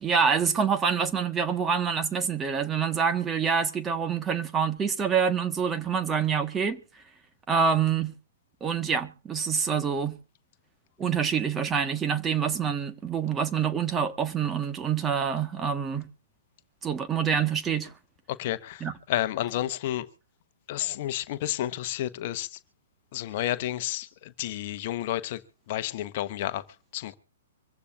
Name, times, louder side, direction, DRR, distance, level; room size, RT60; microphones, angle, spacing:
voice 1, 0.0-6.8 7.5-8.1 8.6-10.2 11.0-16.1 16.8-17.9 18.8-18.9, right 6 dB, 20° right, 1.4 m, -26 dB
voice 2, 18.3-20.1 20.7-22.6 23.1-25.4 25.7-26.6 26.9-27.2, left 13 dB, 45° left, 1.0 m, -31 dB
25.0 x 15.0 x 2.5 m
figure-of-eight pair, 115°, 0 cm